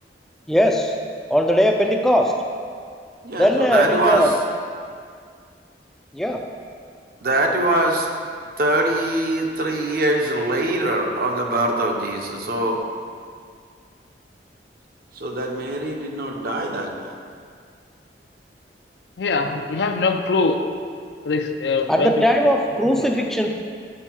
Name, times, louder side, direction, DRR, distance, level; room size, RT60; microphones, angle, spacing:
voice 1, 0.5-1.0 1.3-2.3 3.4-4.3 6.1-6.4 21.9-23.6, equal, ahead, 2 dB, 0.3 m, -19 dB
voice 2, 3.2-4.2 7.2-8.1 8.6-12.8 15.1-17.1, right 1 dB, 55° right, 1 dB, 0.7 m, -23 dB
voice 3, 19.2-20.6 21.3-22.1, left 4 dB, 70° left, 6 dB, 0.5 m, -22 dB
7.6 x 4.6 x 4.5 m, 2.1 s
head